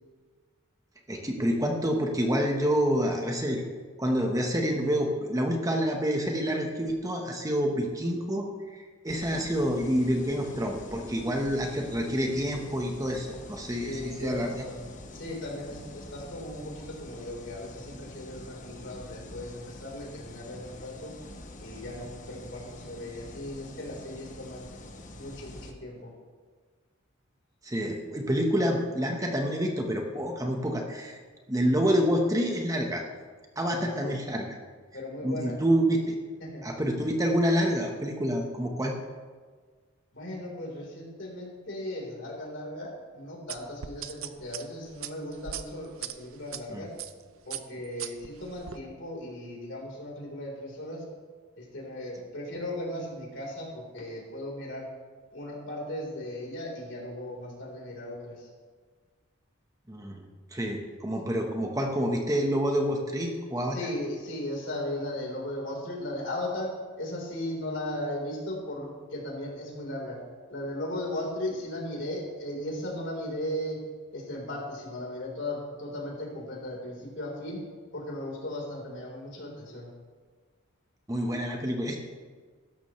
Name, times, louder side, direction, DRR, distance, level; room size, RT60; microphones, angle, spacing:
voice 1, 1.1-3.6 4.0-14.6 27.6-31.2 31.5-33.0 33.6-34.5 35.2-36.1 36.6-39.0 46.7-46.8 59.9-60.2 60.5-63.8 81.1-82.0, equal, 15° right, 2 dB, 1.2 m, -28 dB
sound 1, 9.1-25.7, left 1 dB, 35° left, 1.1 m, -46 dB
voice 2, 13.8-21.1 21.6-24.7 25.1-26.1 33.7-34.2 34.9-35.6 36.4-36.7 40.1-46.9 47.5-51.0 51.6-54.9 55.3-58.5 63.7-70.2 70.5-73.8 74.1-77.6 77.9-79.9, left 1 dB, 60° left, -2 dB, 4.2 m, -37 dB
sound 2, 43.5-46.6 47.0-47.2 47.5-48.8, right 10 dB, 80° right, 0.7 m, -39 dB
16.5 x 13.5 x 3.3 m, 1.5 s
head